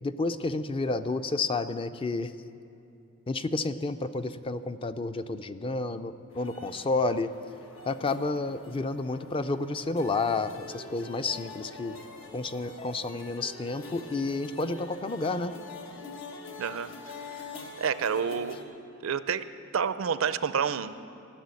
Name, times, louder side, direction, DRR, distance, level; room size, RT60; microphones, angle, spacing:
voice 1, 0.0-2.3 3.3-7.3 7.9-12.0 12.3-15.5, left 3 dB, 25° left, 11 dB, 0.4 m, -30 dB
sound 1, 6.3-18.6, left 3 dB, 85° left, 1.2 m, -45 dB
voice 2, 16.6-16.9 17.3-17.4 17.8-18.6 19.0-19.4 19.7-21.1, right 6 dB, 85° right, 14 dB, 0.5 m, -29 dB
14.5 x 7.0 x 9.6 m, 2.6 s
head